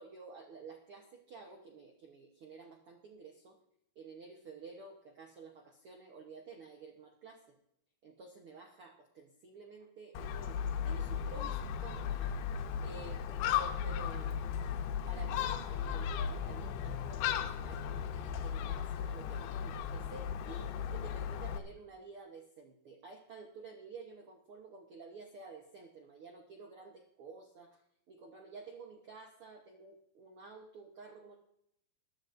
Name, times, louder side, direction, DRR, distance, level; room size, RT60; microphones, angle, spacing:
voice 1, 0.0-3.6 3.9-7.4 8.0-12.4 12.8-14.4 15.1-27.8 28.1-31.4, right 4 dB, 85° right, 2 dB, 1.2 m, -51 dB
Gull seagull, 10.1-21.6, left 8 dB, 80° left, 2.6 m, -36 dB
20.5 x 12.0 x 2.6 m, 0.75 s
omnidirectional pair, 4.3 m